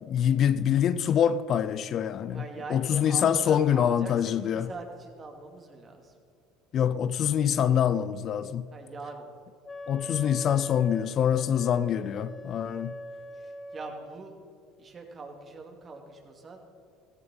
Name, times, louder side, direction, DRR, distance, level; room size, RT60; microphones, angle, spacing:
voice 1, 0.0-2.4 2.7-4.7 6.7-8.7 9.9-13.0, left 9 dB, 50° left, 0.5 m, -25 dB
voice 2, 2.3-6.1 8.7-9.3 13.3-14.3 14.8-16.6, right 3 dB, 35° right, 2.6 m, -42 dB
Wind instrument woodwind instrument, 9.6-14.1, equal, 20° left, 0.8 m, -42 dB
15.5 x 15.0 x 4.0 m
supercardioid pair, 85°, 0 cm